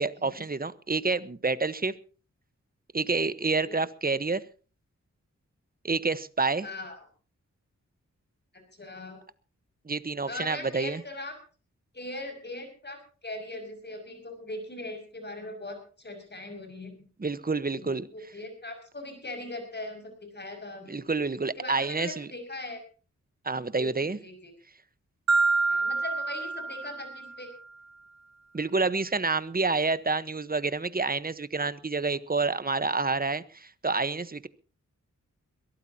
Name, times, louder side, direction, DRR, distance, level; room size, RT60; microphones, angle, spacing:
voice 1, 0.0-1.9 2.9-4.4 5.8-6.7 9.9-11.0 17.2-18.1 20.9-22.3 23.4-24.2 28.5-34.5, right 3 dB, 30° right, 14 dB, 1.1 m, -28 dB
voice 2, 6.6-7.0 8.8-9.2 10.3-11.4 11.9-16.9 17.7-21.0 21.6-22.8 23.7-24.5 25.7-27.5, left 2 dB, 35° left, 5 dB, 6.2 m, -40 dB
Marimba xylophone, 25.3-27.5, right 3 dB, 60° right, 1.0 m, -27 dB
22.5 x 17.0 x 2.9 m, 0.37 s
wide cardioid pair, 75°, 30 cm